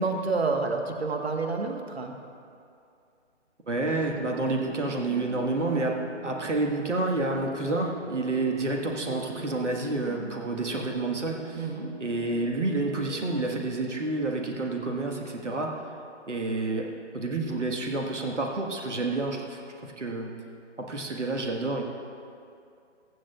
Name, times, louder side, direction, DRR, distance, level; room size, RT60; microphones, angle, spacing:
voice 1, 0.0-2.2 11.6-11.9, right 3 dB, 55° right, 4 dB, 1.4 m, -29 dB
sound 1, 3.7-13.3, right 2 dB, 15° right, 1.4 m, -43 dB
voice 2, 3.7-6.0 6.2-11.7 12.0-15.8 16.3-20.3 20.8-21.8, right 2 dB, 75° right, 1 dB, 1.7 m, -29 dB
22.5 x 7.6 x 2.4 m, 2.5 s
figure-of-eight pair, 140°, 36 cm